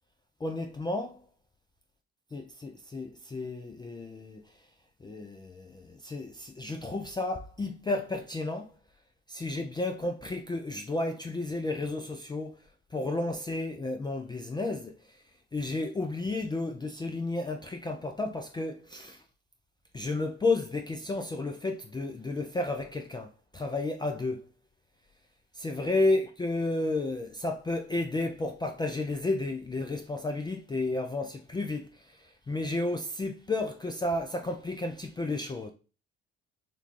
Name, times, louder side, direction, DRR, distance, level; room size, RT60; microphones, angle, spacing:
voice 1, 0.4-1.2 2.3-4.4 5.0-8.7 9.3-12.6 12.9-15.2 15.5-19.2 19.9-24.5 25.5-35.7, left 2 dB, 15° left, 0.4 m, -32 dB
3.7 x 2.2 x 3.0 m
figure-of-eight pair, 50°, 35 cm